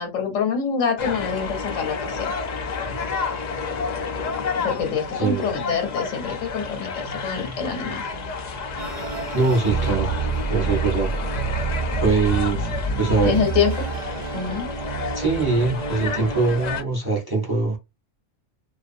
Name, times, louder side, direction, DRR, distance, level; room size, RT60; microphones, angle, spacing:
voice 1, 0.0-2.3 4.6-8.0 13.2-13.9 14.3-14.7, left 6 dB, 80° left, 1.2 m, -25 dB
sound 1, 1.0-16.8, left 4 dB, 55° left, 0.5 m, -30 dB
voice 2, 5.1-5.5 9.3-10.1 10.5-11.1 12.0-12.7 13.0-13.4 15.1-17.8, right 3 dB, 25° right, 0.7 m, -22 dB
sound 2, 8.8-16.8, right 4 dB, 55° right, 0.9 m, -28 dB
2.5 x 2.3 x 2.6 m
omnidirectional pair, 1.3 m